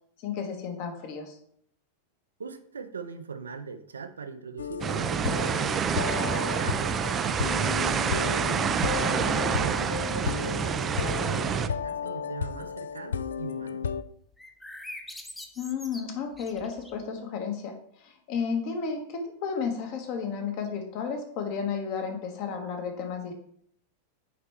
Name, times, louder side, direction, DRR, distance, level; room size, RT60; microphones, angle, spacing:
voice 1, 0.2-1.4 15.6-17.7 18.0-23.3, left 6 dB, 45° left, 4 dB, 1.4 m, -32 dB
voice 2, 2.4-9.0 9.3-13.9, right 5 dB, 70° right, 9 dB, 0.5 m, -41 dB
sound 1, 4.6-14.0, left 6 dB, 65° left, 0.3 m, -33 dB
sound 2, 4.8-11.7, right 7 dB, 25° right, 0.4 m, -27 dB
sound 3, 14.4-17.1, left 1 dB, 5° left, 0.7 m, -44 dB
8.3 x 4.3 x 3.5 m, 0.67 s
figure-of-eight pair, 90°, 0 cm